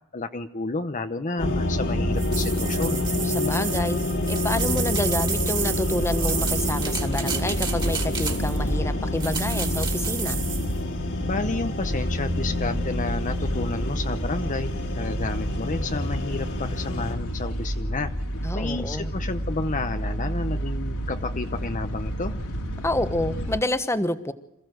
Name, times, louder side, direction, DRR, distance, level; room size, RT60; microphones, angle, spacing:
voice 1, 0.1-3.0 11.3-18.1 18.5-22.3, left 3 dB, 35° left, 8 dB, 0.8 m, -31 dB
sound 1, 1.4-17.2, left 1 dB, 55° left, 2.5 m, -27 dB
sound 2, 2.2-8.7 9.2-10.7, right 6 dB, 20° right, 2.6 m, -31 dB
voice 2, 3.2-4.0 4.3-10.4 18.4-19.1 22.8-24.3, left 1 dB, 10° left, 11 dB, 1.2 m, -28 dB
sound 3, 11.8-23.6, equal, 75° left, 3.2 m, -31 dB
27.0 x 16.0 x 7.9 m, 0.84 s
head